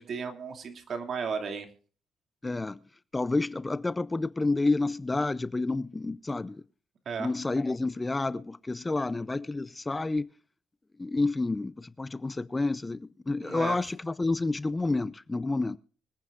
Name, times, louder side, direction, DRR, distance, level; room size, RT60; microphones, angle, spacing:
voice 1, 0.0-1.7 7.1-7.3 13.4-13.8, right 5 dB, 50° right, 2.5 m, -34 dB
voice 2, 2.4-2.8 3.1-6.6 7.2-10.3 11.0-15.8, left 3 dB, 15° left, 0.5 m, -29 dB
25.5 x 9.4 x 2.5 m
cardioid pair, 100°, 0 cm